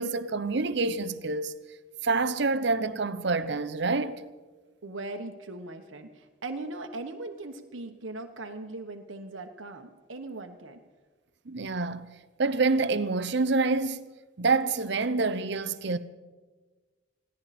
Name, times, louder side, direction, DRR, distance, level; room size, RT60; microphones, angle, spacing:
voice 1, 0.0-1.5 2.0-4.2 11.5-12.1 12.4-14.1 14.4-16.0, right 3 dB, 60° right, 0.7 m, -27 dB
voice 2, 4.8-10.8, right 2 dB, 80° right, 1.2 m, -39 dB
21.0 x 16.0 x 4.3 m
head